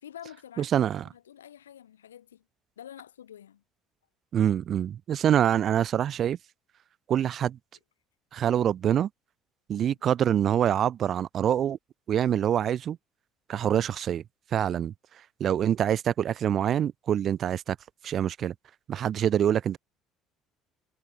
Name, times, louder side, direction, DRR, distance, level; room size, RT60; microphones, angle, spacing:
voice 1, 0.0-2.4 2.8-3.6 9.8-10.0, left 10 dB, 80° left, 4.0 m, -48 dB
voice 2, 0.6-1.0 4.3-6.4 7.1-7.6 8.3-9.1 9.7-11.8 12.1-13.0 13.5-14.2 14.5-14.9 15.4-17.8 18.0-18.5 18.9-19.8, right 9 dB, 45° right, 0.5 m, -25 dB
figure-of-eight pair, 55°, 0 cm